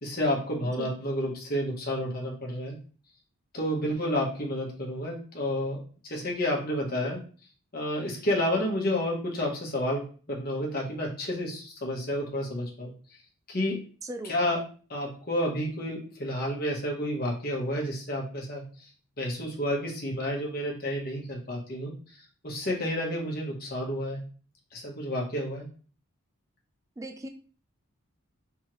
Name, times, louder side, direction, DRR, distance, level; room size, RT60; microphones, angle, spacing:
voice 1, 0.0-2.8 3.5-7.2 7.7-13.2 13.5-13.8 14.2-14.6 14.9-24.2 24.7-25.7, left 1 dB, 45° left, -2 dB, 1.1 m, -30 dB
voice 2, 14.0-14.3 27.0-27.3, right 1 dB, 15° right, 5 dB, 0.3 m, -37 dB
3.6 x 3.2 x 3.0 m, 0.40 s
head